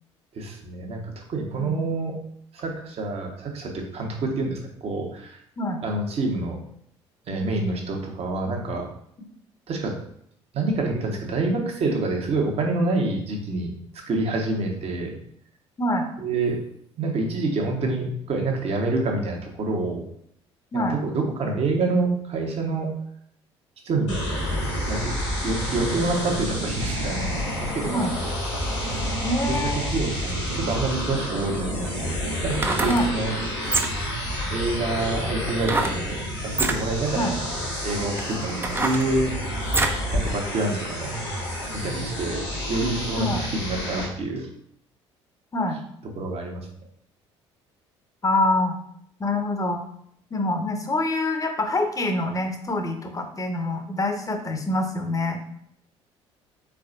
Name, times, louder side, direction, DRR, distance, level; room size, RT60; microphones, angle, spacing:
voice 1, 0.3-2.2 2.5-5.4 5.8-6.6 7.3-8.9 9.7-10.0 10.5-15.1 16.2-16.6 17.0-20.1 20.7-22.9 23.8-24.2 24.9-28.3 29.5-32.1 32.4-33.6 34.5-37.3 37.8-39.5 40.1-41.1 41.7-42.4 42.7-44.5 46.1-46.7, right 3 dB, 45° right, 1 dB, 1.2 m, -27 dB
sound 1, 24.1-44.1, equal, 80° left, 1.6 m, -29 dB
voice 2, 29.2-29.9 32.9-33.1 37.1-37.3 43.2-43.4 45.5-45.8 48.2-48.8 49.2-49.8 50.3-55.4, left 1 dB, 20° left, 5 dB, 0.9 m, -25 dB
sound 2, 32.4-33.0 33.6-34.1 35.6-36.0 36.5-36.8 37.5-37.6 38.2-40.0 40.5-40.6, right 2 dB, 15° right, 0.6 m, -26 dB
4.7 x 3.9 x 2.5 m, 0.68 s
figure-of-eight pair, 50°, 15 cm